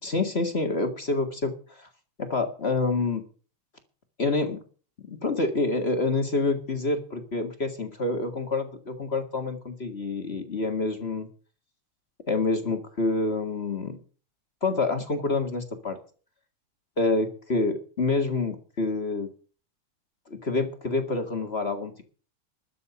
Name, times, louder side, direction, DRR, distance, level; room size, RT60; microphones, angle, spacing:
voice 1, 0.0-1.9 2.2-3.2 4.2-4.6 5.0-11.3 12.3-14.0 14.6-16.0 17.0-19.3 20.3-22.0, left 3 dB, 30° left, 6 dB, 1.4 m, -27 dB
12.5 x 7.7 x 9.9 m, 0.39 s
omnidirectional pair, 3.3 m